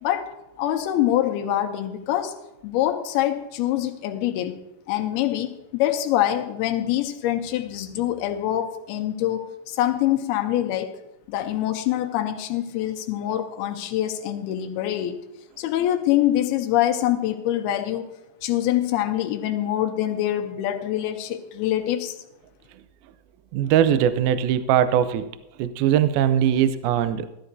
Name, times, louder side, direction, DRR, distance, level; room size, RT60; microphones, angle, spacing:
voice 1, 0.0-2.4 2.6-4.6 4.9-11.0 11.3-15.2 15.6-18.1 18.4-22.2, left 12 dB, 85° left, 5 dB, 2.6 m, -25 dB
voice 2, 23.5-25.3 25.6-27.3, right 10 dB, 80° right, 12 dB, 2.2 m, -20 dB
15.0 x 12.5 x 2.6 m, 0.91 s
omnidirectional pair, 4.6 m